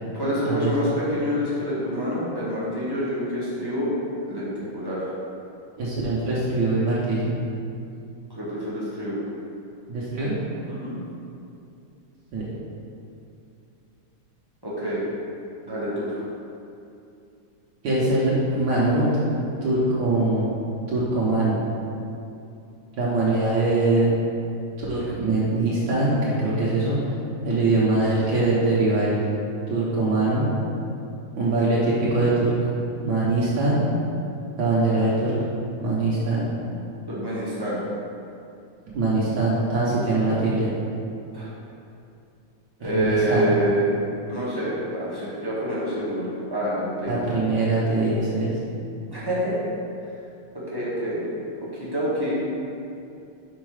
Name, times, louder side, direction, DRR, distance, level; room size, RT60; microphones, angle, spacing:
voice 1, 0.1-3.9 4.3-5.1 8.3-9.2 10.6-11.0 14.6-15.0 15.6-16.2 37.1-37.8 41.3-41.5 42.8-44.0 44.3-47.3 49.1-49.6 50.7-51.2 51.6-52.4, equal, 15° right, -9 dB, 1.2 m, -27 dB
voice 2, 5.8-7.3 9.9-10.4 12.3-12.4 17.8-19.1 19.6-20.5 20.9-21.6 23.0-24.2 24.8-27.0 27.4-29.2 29.7-30.5 31.4-32.6 33.0-33.8 34.6-35.3 35.8-36.5 38.9-40.7 42.9-43.5 47.1-48.5, right 2 dB, 75° right, -7 dB, 1.8 m, -22 dB
5.4 x 4.6 x 4.8 m, 2.6 s
omnidirectional pair, 2.2 m